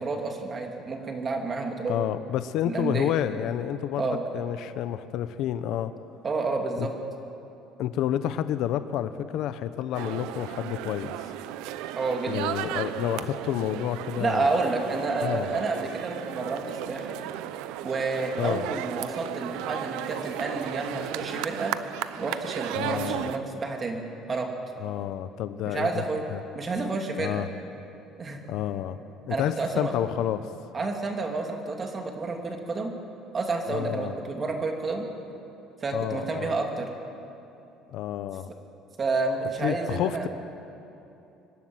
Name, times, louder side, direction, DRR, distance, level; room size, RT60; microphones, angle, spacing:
voice 1, 0.0-2.0 2.6-3.1 4.0-4.2 6.2-6.9 11.9-12.5 14.2-17.2 17.8-21.7 22.2-24.5 25.6-26.2 26.5-27.5 28.2-28.4 29.3-29.9 30.7-32.9 33.3-35.0 35.8-36.9 39.0-40.3, right 3 dB, 30° right, 3 dB, 2.7 m, -30 dB
voice 2, 1.9-5.9 6.8-6.9 7.8-11.3 12.3-14.5 15.2-15.5 18.4-18.6 22.7-23.3 24.8-26.0 26.3-26.4 27.2-27.5 28.5-29.0 29.3-30.5 33.7-34.1 35.9-36.6 37.9-38.5 39.6-40.3, left 11 dB, 70° left, 12 dB, 0.8 m, -29 dB
sound 1, 9.9-23.4, right 12 dB, 85° right, 0.7 m, -35 dB
24.5 x 12.0 x 9.5 m, 2.8 s
cardioid pair, 120°, 0 cm